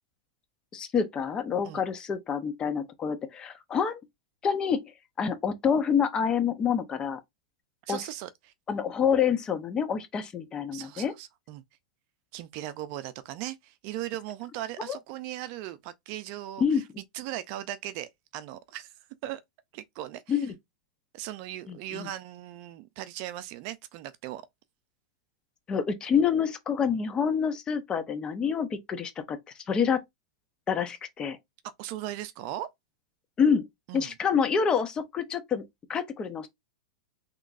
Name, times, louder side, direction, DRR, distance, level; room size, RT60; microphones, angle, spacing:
voice 1, 0.7-4.0 4.4-4.8 5.2-7.2 7.9-8.0 8.7-11.1 14.9-15.0 16.6-16.8 20.3-20.5 21.7-22.1 25.7-29.4 29.7-30.0 30.7-31.4 33.4-33.7 33.9-35.6 35.9-36.5, left 7 dB, 25° left, 0.8 m, -27 dB
voice 2, 7.8-8.5 10.7-11.6 12.3-16.8 17.1-18.9 19.2-19.4 19.7-20.5 21.1-24.4 31.8-32.7 33.9-34.1, right 13 dB, 50° right, 0.5 m, -38 dB
3.7 x 3.0 x 2.6 m
hypercardioid pair, 125°, 3 cm